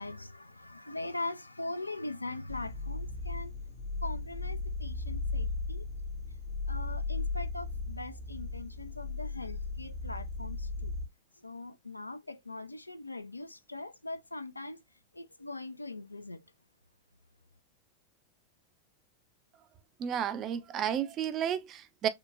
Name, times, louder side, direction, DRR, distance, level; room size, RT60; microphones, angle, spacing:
voice 1, 0.0-3.5 4.0-5.9 6.7-10.9 11.4-14.8 15.1-16.4, left 2 dB, 85° left, 0.3 m, -41 dB
sound 1, 2.5-11.1, left 3 dB, 35° left, 0.6 m, -36 dB
voice 2, 20.0-22.1, right 9 dB, 30° right, 0.4 m, -32 dB
3.7 x 2.1 x 2.4 m
figure-of-eight pair, 90°, 0 cm